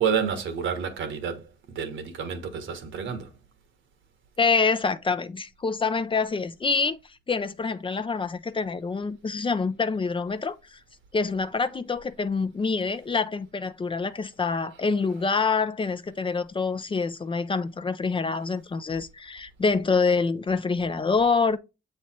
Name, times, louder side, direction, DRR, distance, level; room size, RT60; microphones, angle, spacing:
voice 1, 0.0-3.3, right 7 dB, 75° right, 1.3 m, -29 dB
voice 2, 4.4-7.0 7.3-10.8 11.1-21.6, left 4 dB, 25° left, 0.5 m, -26 dB
7.1 x 3.2 x 4.3 m
cardioid pair, 90°, 20 cm